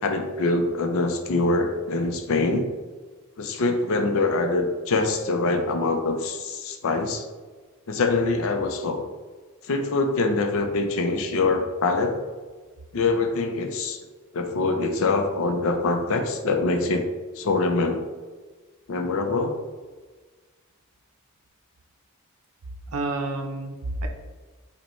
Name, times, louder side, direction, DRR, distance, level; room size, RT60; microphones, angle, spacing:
voice 1, 0.0-2.7 3.4-7.3 7.9-9.0 9.7-12.2 12.9-14.0 14.3-17.1 17.4-18.0 18.9-19.5, left 3 dB, 70° left, 5 dB, 0.5 m, -24 dB
voice 2, 22.9-24.1, right 2 dB, 85° right, 4 dB, 0.5 m, -29 dB
5.1 x 2.2 x 3.0 m, 1.4 s
head